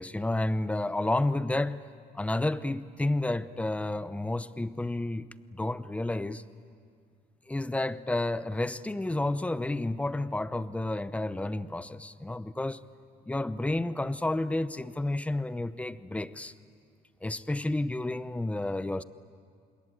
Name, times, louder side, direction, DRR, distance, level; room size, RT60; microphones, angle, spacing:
voice 1, 0.0-1.8 2.1-6.4 7.5-12.8 13.3-16.5 17.2-19.0, left 2 dB, 10° left, 15 dB, 0.7 m, -31 dB
26.5 x 21.5 x 9.0 m, 2.2 s
cardioid pair, 110°, 17 cm